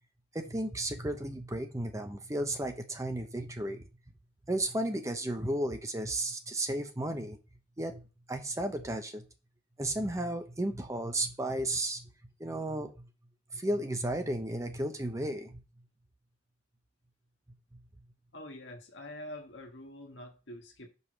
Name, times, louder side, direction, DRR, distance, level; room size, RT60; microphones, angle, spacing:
voice 1, 0.3-3.8 4.5-7.4 7.8-8.0 8.3-9.2 9.8-12.1 12.4-12.9 13.5-15.6, right 1 dB, 15° right, 0.8 m, -33 dB
voice 2, 18.3-20.9, left 1 dB, 80° left, 1.5 m, -45 dB
5.5 x 4.8 x 6.1 m
head